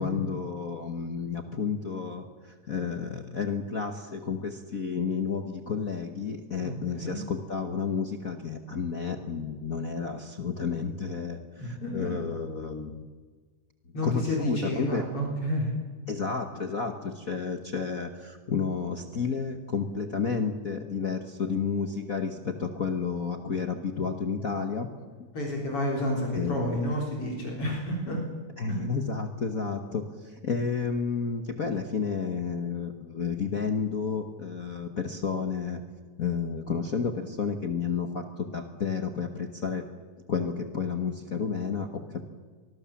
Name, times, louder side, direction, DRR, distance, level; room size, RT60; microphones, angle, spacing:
voice 1, 0.0-13.0 14.0-15.0 16.1-24.9 26.3-26.8 28.6-35.8 36.2-39.9 40.3-42.3, left 5 dB, 60° left, 6 dB, 0.8 m, -31 dB
voice 2, 6.6-7.2 11.6-12.1 13.9-15.7 25.3-28.2 28.7-28.8, left 1 dB, 45° left, -1 dB, 4.7 m, -30 dB
24.5 x 20.5 x 7.2 m, 1.5 s
omnidirectional pair, 3.5 m